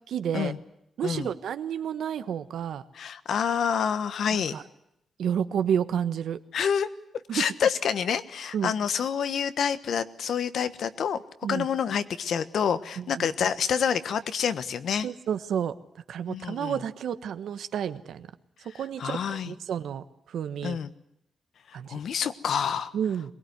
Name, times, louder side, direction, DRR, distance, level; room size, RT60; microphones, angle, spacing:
voice 1, 0.1-0.5 1.0-2.8 4.3-4.6 5.2-6.4 7.3-7.4 8.5-8.7 11.4-11.7 13.0-13.3 15.0-18.3 18.6-19.2 19.4-20.8 21.7-22.0 22.9-23.3, right 8 dB, 85° right, 11 dB, 1.3 m, -30 dB
voice 2, 2.9-4.5 6.5-6.9 7.3-11.2 11.5-15.1 16.3-16.8 19.0-19.5 20.6-20.9 21.7-22.9, left 7 dB, 70° left, 12 dB, 1.3 m, -28 dB
22.5 x 20.5 x 9.5 m, 0.78 s
wide cardioid pair, 150°, 0 cm